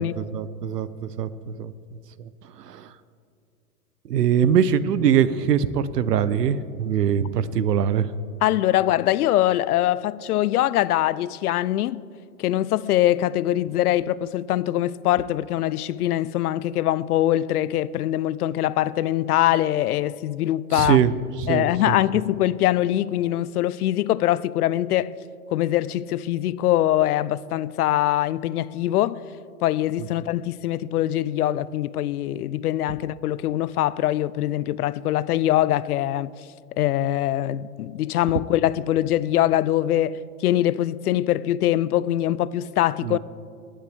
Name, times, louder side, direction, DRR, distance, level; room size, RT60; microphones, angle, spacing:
voice 1, 0.0-1.7 2.2-2.3 2.6-2.9 4.1-8.1 20.7-21.1 21.4-21.9 43.0-43.2, right 8 dB, 90° right, 0.8 m, -22 dB
voice 2, 8.4-12.0 12.4-21.0 21.5-25.1 25.5-29.2 29.6-36.3 36.7-43.2, left 13 dB, 70° left, 0.5 m, -23 dB
20.0 x 8.8 x 3.5 m
hypercardioid pair, 130°, 46 cm